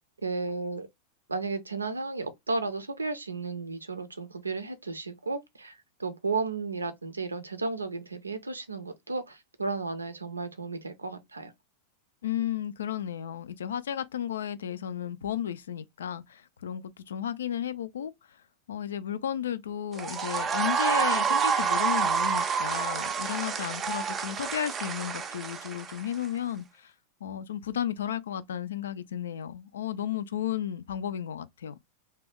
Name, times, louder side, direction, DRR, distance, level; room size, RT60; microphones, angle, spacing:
voice 1, 0.2-0.9 1.3-11.5, right 3 dB, 80° right, 0.5 m, -33 dB
voice 2, 12.2-18.1 18.7-26.9 27.2-31.8, left 10 dB, 65° left, 0.3 m, -33 dB
sound 1, 19.9-26.3, right 6 dB, 25° right, 0.4 m, -28 dB
2.7 x 2.2 x 3.3 m
figure-of-eight pair, 90°, 0 cm